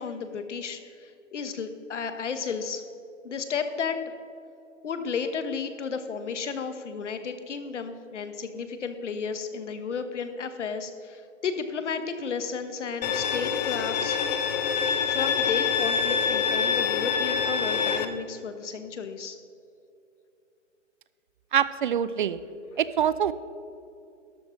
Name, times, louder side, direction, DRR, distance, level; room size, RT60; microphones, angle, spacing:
voice 1, 0.0-2.8 3.2-4.0 4.8-14.3 15.1-19.4, left 5 dB, 70° left, 9 dB, 1.3 m, -33 dB
Bowed string instrument, 13.0-18.0, left 6 dB, 35° left, 0.8 m, -26 dB
voice 2, 21.5-22.4 22.8-23.3, right 9 dB, 45° right, 15 dB, 0.5 m, -24 dB
13.0 x 12.0 x 3.2 m, 2.6 s
hypercardioid pair, 135°, 37 cm